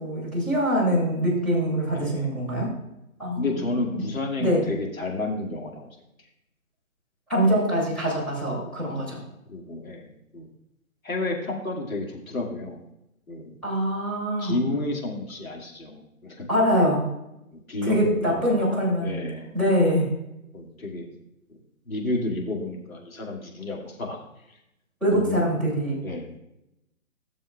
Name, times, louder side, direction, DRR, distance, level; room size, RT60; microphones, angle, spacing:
voice 1, 0.0-2.7 3.2-4.0 4.4-4.6 7.3-9.2 13.6-14.6 16.5-17.1 17.8-19.2 19.5-20.1 25.0-26.0, equal, ahead, -10 dB, 3.4 m, -24 dB
voice 2, 1.9-2.3 3.4-5.9 9.5-10.1 10.3-10.5 11.0-12.8 13.3-13.6 14.4-16.5 17.5-19.5 20.5-21.1 21.9-24.2 25.1-25.5 26.0-26.4, left 2 dB, 75° left, -1 dB, 2.5 m, -31 dB
16.0 x 7.0 x 2.4 m, 0.86 s
figure-of-eight pair, 145°, 42 cm